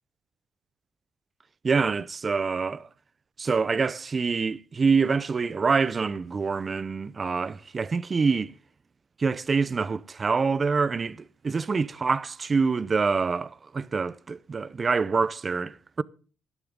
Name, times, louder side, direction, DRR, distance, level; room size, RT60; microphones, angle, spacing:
voice 1, 1.6-2.9 3.4-8.5 9.2-16.0, right 4 dB, 35° right, 0.7 m, -26 dB
16.5 x 11.5 x 3.8 m
cardioid pair, 90°, 0 cm